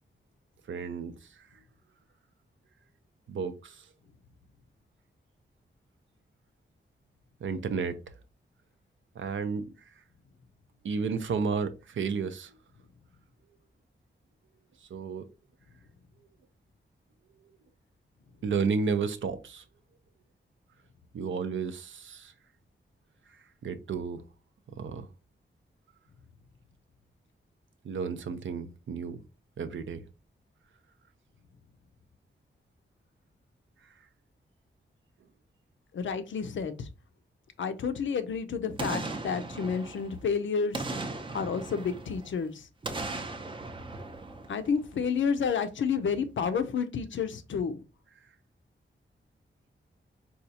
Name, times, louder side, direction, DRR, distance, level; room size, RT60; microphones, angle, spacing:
voice 1, 0.7-1.6 3.3-3.9 7.4-8.2 9.1-10.0 10.8-12.6 14.8-15.3 18.4-19.6 21.1-22.3 23.3-24.2 24.7-25.1 27.8-29.2 29.6-30.0 33.8-34.1 48.2-48.3, right 5 dB, 70° right, 0.5 m, -33 dB
voice 2, 35.9-36.9 37.6-40.8 41.3-42.6 44.5-47.8, left 6 dB, 70° left, 0.5 m, -30 dB
Boom, 38.8-40.3 40.7-42.4 42.8-45.1 45.4-45.5, right 2 dB, 25° right, 0.5 m, -38 dB
4.2 x 2.3 x 2.6 m
wide cardioid pair, 100°, 20 cm